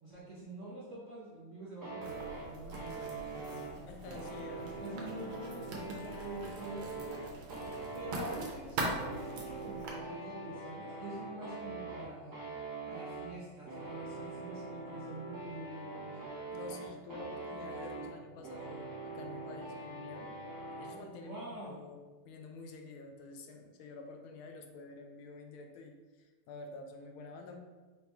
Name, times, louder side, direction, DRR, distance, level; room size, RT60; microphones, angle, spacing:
voice 1, 0.0-3.8 4.5-7.1 7.9-12.3 12.9-16.1 21.2-21.7, right 2 dB, 55° right, -7 dB, 0.8 m, -46 dB
sound 1, 1.8-21.0, right 3 dB, 20° right, 0.6 m, -44 dB
Writing, 2.0-9.9, right 2 dB, 80° right, 1.6 m, -43 dB
voice 2, 3.9-5.0 16.5-20.3 20.8-27.6, left 3 dB, 85° left, 4 dB, 1.4 m, -49 dB
4.9 x 2.8 x 3.4 m, 1.3 s
omnidirectional pair, 2.2 m